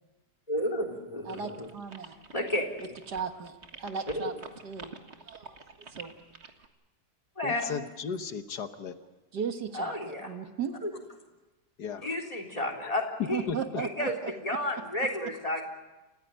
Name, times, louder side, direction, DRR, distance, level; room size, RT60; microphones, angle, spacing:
voice 1, 0.5-1.7 2.3-2.6 4.2-4.3 7.4-7.8 9.7-10.3 10.8-10.9 12.0-13.0 13.3-13.4 13.8-15.6, left 1 dB, 20° left, 5 dB, 3.6 m, -31 dB
sound 1, 1.3-6.7, right 4 dB, 40° right, 1.9 m, -48 dB
voice 2, 1.3-2.2 2.8-4.3 4.6-4.9 5.2-5.6 5.9-6.1 6.4-6.5 9.3-10.8 13.3-14.6, right 7 dB, 75° right, 7 dB, 2.1 m, -36 dB
voice 3, 7.4-8.9 11.8-12.0 12.8-12.9 13.2-13.8, left 6 dB, 75° left, 9 dB, 1.7 m, -35 dB
29.5 x 15.0 x 9.1 m, 1.1 s
omnidirectional pair, 1.8 m